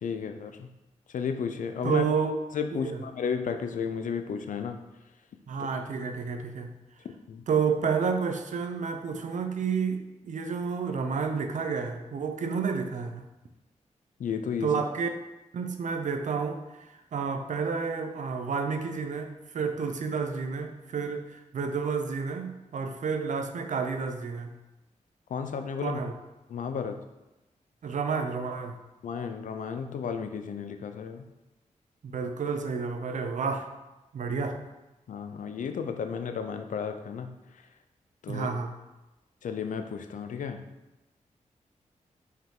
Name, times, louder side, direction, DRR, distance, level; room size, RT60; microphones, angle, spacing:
voice 1, 0.0-0.7 1.1-2.0 2.5-4.8 5.6-5.7 7.3-7.4 14.2-14.8 25.3-26.0 26.5-27.0 29.0-31.3 35.1-37.3 38.2-38.5 39.4-40.7, left 6 dB, 85° left, 7 dB, 0.6 m, -33 dB
voice 2, 1.8-2.4 2.7-3.0 5.5-6.8 7.5-13.2 14.6-15.1 15.5-24.6 25.8-26.1 27.8-28.8 32.0-33.7 34.1-34.6 38.3-38.7, right 5 dB, 70° right, 6 dB, 0.7 m, -30 dB
5.5 x 4.7 x 3.8 m, 1.0 s
wide cardioid pair, 100°, 13 cm